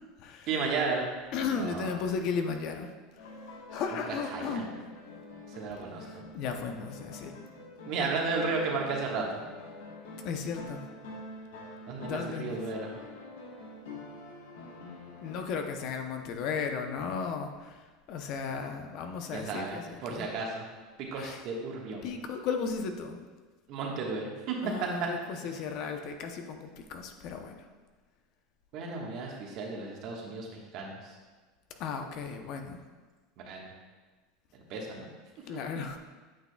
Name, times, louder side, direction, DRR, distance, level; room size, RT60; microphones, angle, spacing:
voice 1, 0.5-1.1 1.4-1.9 4.1-4.6 5.5-6.2 7.9-9.4 11.9-12.9 19.3-20.7 21.0-22.1 23.7-24.6 28.7-31.2 33.4-33.7 34.5-35.1, right 4 dB, 55° right, -1 dB, 1.4 m, -34 dB
voice 2, 1.3-2.9 3.2-3.3 3.7-4.8 6.1-7.3 10.2-10.8 12.0-12.6 15.2-20.3 21.1-21.4 22.0-23.3 24.6-27.6 31.8-32.8 35.5-36.0, left 5 dB, 55° left, 5 dB, 0.7 m, -35 dB
sound 1, 3.2-15.7, left 2 dB, 85° left, 1.2 m, -46 dB
8.9 x 6.1 x 2.3 m, 1.3 s
supercardioid pair, 120°, 0 cm